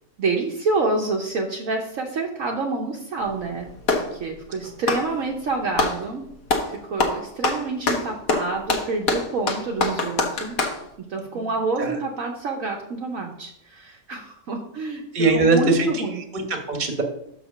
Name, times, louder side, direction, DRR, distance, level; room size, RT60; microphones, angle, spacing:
voice 1, 0.2-3.7 4.1-6.3 6.7-10.6 11.0-15.0 15.3-16.2, right 3 dB, 60° right, 0 dB, 1.2 m, -28 dB
Clapping, 3.2-4.1 4.8-6.0 6.5-6.7 7.0-10.8, left 3 dB, 60° left, 1.4 m, -24 dB
voice 2, 15.1-17.0, right 3 dB, 30° right, 4 dB, 1.2 m, -21 dB
5.8 x 5.0 x 6.5 m, 0.75 s
omnidirectional pair, 1.8 m